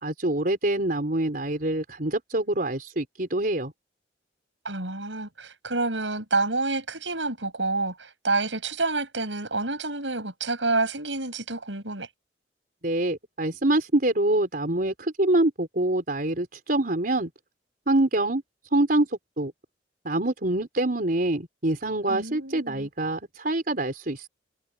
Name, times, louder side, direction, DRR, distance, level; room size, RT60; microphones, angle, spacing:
voice 1, 0.0-3.7 12.8-17.3 17.9-18.4 18.7-19.1 19.4-19.5 20.0-24.3, right 1 dB, 50° right, 4.4 m, -25 dB
voice 2, 4.6-12.1 22.1-22.9, right 3 dB, 90° right, 7.7 m, -28 dB
head